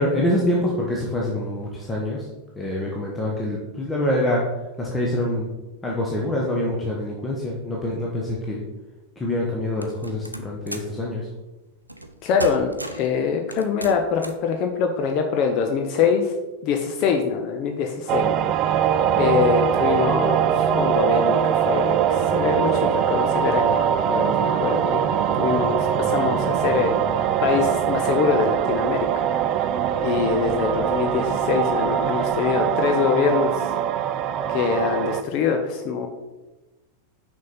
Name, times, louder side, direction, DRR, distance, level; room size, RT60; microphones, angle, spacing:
voice 1, 0.0-2.2 2.6-4.5 4.8-5.5 5.8-8.6 9.2-11.2, left 1 dB, 15° left, -3 dB, 1.1 m, -25 dB
sound 1, 9.8-11.0 11.9-12.1 12.4-13.1 13.5-14.5, right 1 dB, 85° right, 0.5 m, -35 dB
voice 2, 12.2-16.3 16.6-18.3 18.6-25.1 25.3-29.7 30.0-33.7 34.5-36.1, left 6 dB, 40° left, 4 dB, 0.7 m, -24 dB
sound 2, 18.1-35.2, right 9 dB, 35° right, 0.4 m, -22 dB
6.3 x 5.3 x 4.3 m, 1.1 s
figure-of-eight pair, 90°, 0 cm